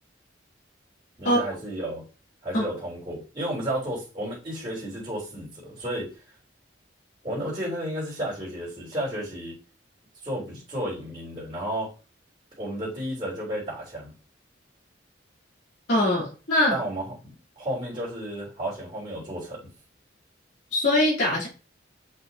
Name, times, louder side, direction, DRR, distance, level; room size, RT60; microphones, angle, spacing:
voice 1, 1.2-2.0 2.4-6.1 7.2-9.6 10.2-11.9 12.6-14.1 16.7-19.6, right 1 dB, 25° right, -7 dB, 3.6 m, -32 dB
voice 2, 15.9-16.8 20.7-21.5, left 1 dB, 65° left, -7 dB, 3.4 m, -22 dB
6.5 x 5.9 x 2.8 m, 0.34 s
head